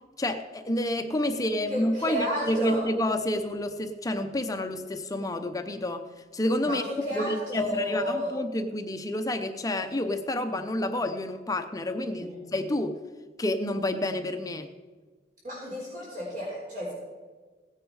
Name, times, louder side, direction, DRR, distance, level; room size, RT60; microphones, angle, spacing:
voice 1, 0.2-6.0 6.3-6.8 7.1-13.0 13.4-14.7, left 1 dB, 20° left, 7 dB, 0.7 m, -29 dB
voice 2, 1.7-2.8 6.6-8.3 12.2-12.4 15.4-16.9, equal, 50° right, -5 dB, 3.8 m, -32 dB
16.5 x 9.8 x 4.8 m, 1.4 s
head